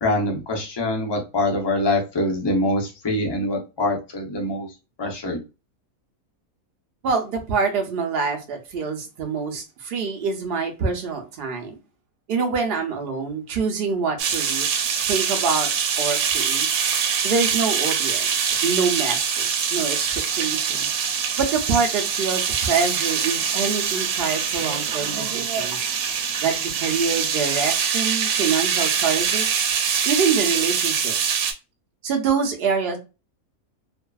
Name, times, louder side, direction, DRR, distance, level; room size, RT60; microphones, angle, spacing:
voice 1, 0.0-4.7 5.0-5.4, left 1 dB, 40° left, 0 dB, 0.3 m, -24 dB
voice 2, 7.0-11.8 12.3-14.7 15.1-15.7 16.0-16.7 17.2-20.1 20.4-20.9 21.4-25.9 26.4-29.5 30.0-31.4 32.0-33.0, right 5 dB, 55° right, 3 dB, 0.7 m, -25 dB
sound 1, 14.2-31.5, right 7 dB, 85° right, 1.0 m, -24 dB
2.6 x 2.4 x 2.3 m, 0.29 s
omnidirectional pair, 1.5 m